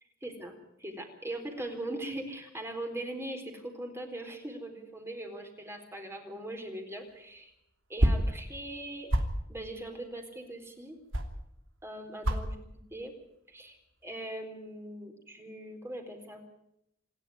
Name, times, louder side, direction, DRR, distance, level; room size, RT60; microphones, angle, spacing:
voice 1, 0.2-0.5 0.8-7.5 7.9-9.1 9.5-11.0 11.8-12.6 12.9-13.1 13.5-16.4, right 1 dB, 15° right, 4 dB, 4.0 m, -40 dB
sound 1, 7.0-11.8 12.1-12.5 12.8-13.4 13.7-14.1, equal, 80° right, 3.0 m, -29 dB
27.0 x 11.0 x 9.3 m, 0.79 s
head